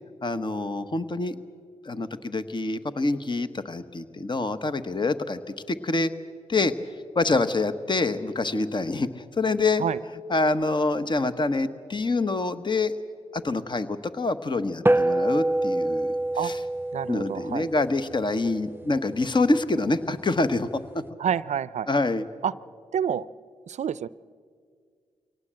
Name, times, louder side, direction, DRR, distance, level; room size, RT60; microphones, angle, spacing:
voice 1, 0.2-1.4 1.8-5.4 5.7-6.1 6.5-6.7 7.1-9.8 10.3-12.9 13.3-16.1 16.4-16.6 17.1-21.0 21.9-22.2, left 3 dB, 35° left, 11 dB, 1.2 m, -26 dB
sound 1, 14.9-19.5, right 1 dB, 15° right, 0.5 m, -27 dB
voice 2, 16.9-17.7 21.2-21.9 22.4-22.5 22.9-23.3 23.7-24.1, right 8 dB, 65° right, 19 dB, 0.5 m, -28 dB
23.5 x 18.0 x 7.6 m, 2.1 s
supercardioid pair, 45°, 13 cm